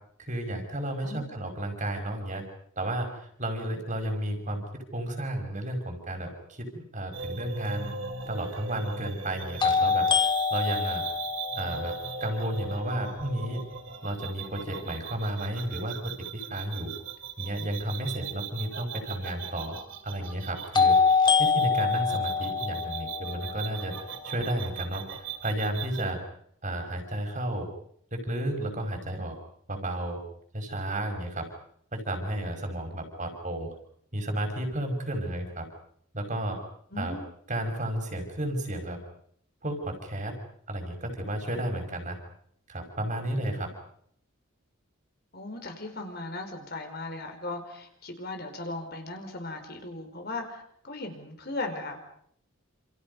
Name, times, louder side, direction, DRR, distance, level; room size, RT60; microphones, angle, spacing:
voice 1, 0.2-2.4 2.8-7.9 8.3-10.1 10.5-11.0 11.6-11.9 12.2-13.6 14.0-16.9 17.4-19.8 20.0-21.1 21.4-23.9 24.2-26.2 26.6-27.7 28.1-29.4 29.7-30.2 30.5-31.5 31.9-33.7 34.1-35.7 36.1-36.6 37.0-37.2 37.5-39.0 39.6-40.4 40.7-42.2 42.7-43.7, right 1 dB, 35° right, 4 dB, 5.6 m, -32 dB
sound 1, 7.1-26.1, right 6 dB, 60° right, 3.4 m, -39 dB
sound 2, 7.6-7.7 9.6-13.5 20.7-24.8, left 5 dB, 20° left, 1.9 m, -26 dB
voice 2, 36.9-37.2 45.3-52.0, left 2 dB, 50° left, 5 dB, 4.7 m, -37 dB
29.0 x 28.0 x 5.4 m, 0.67 s
head